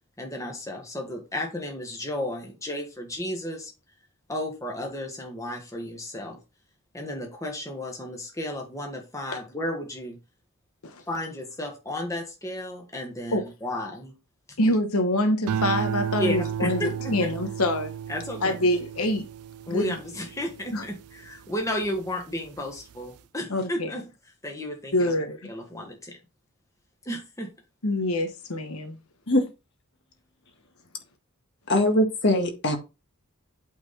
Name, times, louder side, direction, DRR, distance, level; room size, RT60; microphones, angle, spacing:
voice 1, 0.2-3.7 4.3-6.4 6.9-10.2 11.1-14.1 16.2-17.3 18.1-18.6 19.7-24.0 24.4-25.1 25.5-26.2 27.0-27.5, left 1 dB, 15° left, 1.5 m, -33 dB
voice 2, 14.6-16.8 17.1-17.9 18.4-19.2 19.7-19.9 20.7-20.8 23.5-23.9 24.9-25.5 27.8-29.0, left 1 dB, 80° left, 1.1 m, -25 dB
sound 1, 15.5-22.0 22.5-22.9, right 8 dB, 90° right, 0.4 m, -33 dB
voice 3, 31.7-32.8, left 1 dB, 50° left, 1.8 m, -21 dB
8.4 x 4.1 x 4.2 m
head